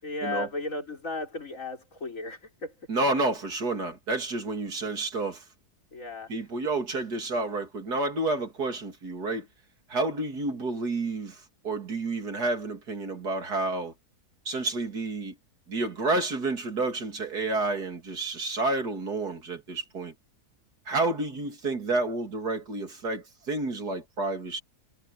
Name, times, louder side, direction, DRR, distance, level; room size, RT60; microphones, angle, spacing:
voice 1, 0.0-2.7 5.9-6.3, left 2 dB, 55° left, 5.2 m, -35 dB
voice 2, 2.9-5.4 6.3-9.5 9.9-13.9 14.5-15.4 15.7-20.1 20.9-24.6, right 2 dB, 90° right, 3.6 m, -30 dB
omnidirectional pair, 1.6 m